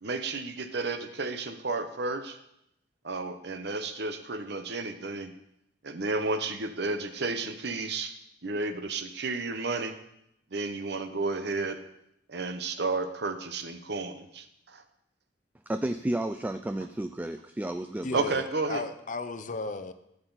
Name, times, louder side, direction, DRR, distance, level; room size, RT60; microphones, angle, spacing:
voice 1, 0.0-2.4 3.0-5.3 5.8-8.1 8.4-9.9 10.5-11.8 12.3-14.8 18.1-18.8, right 3 dB, 65° right, 9 dB, 0.9 m, -32 dB
voice 2, 15.7-18.3, right 1 dB, 10° right, 8 dB, 0.3 m, -32 dB
voice 3, 18.0-19.9, left 3 dB, 45° left, 11 dB, 0.7 m, -35 dB
14.0 x 8.0 x 4.0 m, 0.79 s
head